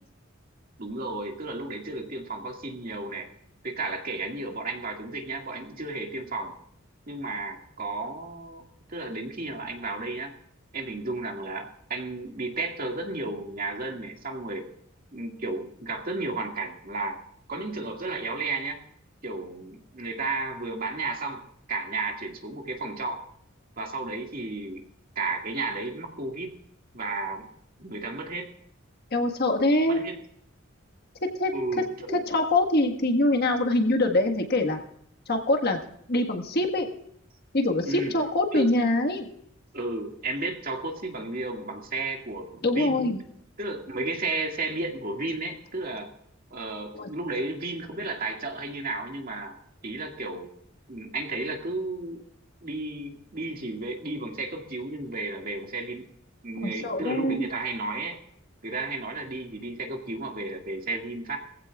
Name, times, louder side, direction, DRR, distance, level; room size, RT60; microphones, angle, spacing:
voice 1, 0.8-3.3 3.6-6.5 7.1-8.6 8.9-10.3 10.7-14.7 15.1-17.2 17.5-18.8 19.2-21.4 21.7-23.2 23.8-24.8 25.2-26.6 26.9-27.5 27.8-28.5 29.9-30.1 31.5-31.8 32.1-32.2 37.9-38.1 38.5-38.7 39.7-43.0 43.6-46.1 46.5-49.6 49.8-50.5 50.9-52.2 52.6-56.1 56.4-58.2 58.6-61.4, right 2 dB, 45° right, 2 dB, 2.0 m, -33 dB
voice 2, 29.1-30.0 31.2-31.5 32.1-34.8 35.3-35.8 36.1-36.9 37.5-39.3 42.6-43.2 46.9-47.1 56.6-57.4, left 1 dB, 50° left, 4 dB, 1.6 m, -24 dB
21.5 x 15.5 x 2.4 m, 0.68 s
head